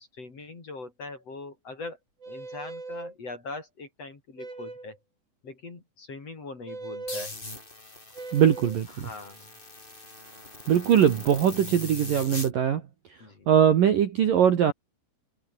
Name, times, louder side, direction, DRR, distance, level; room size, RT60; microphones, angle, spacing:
voice 1, 0.0-2.0 2.3-5.0 5.4-7.3 9.0-9.5 13.2-13.5, left 3 dB, 30° left, 4.8 m, -41 dB
sound 1, 2.2-3.1 4.4-5.0 6.7-7.3 8.1-8.8, right 3 dB, 30° right, 8.1 m, -39 dB
sound 2, 7.1-12.5, left 2 dB, 10° left, 3.0 m, -41 dB
voice 2, 8.3-9.1 10.7-12.8 13.5-14.7, right 9 dB, 55° right, 2.8 m, -21 dB
omnidirectional pair, 5.9 m